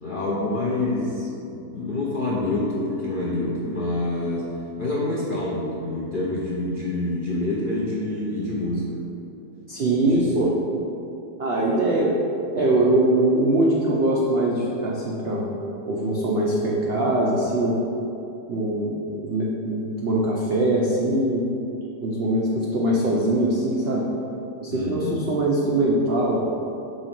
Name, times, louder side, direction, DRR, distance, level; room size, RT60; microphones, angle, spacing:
voice 1, 0.0-4.5 4.8-9.0 10.0-10.5 24.7-25.2, left 2 dB, 65° left, -5 dB, 0.5 m, -27 dB
voice 2, 9.7-10.5 11.4-12.1 12.5-15.5 15.9-17.8 18.5-21.4 22.0-24.0 24.6-26.4, right 1 dB, 80° right, -4 dB, 0.5 m, -22 dB
5.4 x 3.9 x 5.8 m, 2.8 s
omnidirectional pair, 2.0 m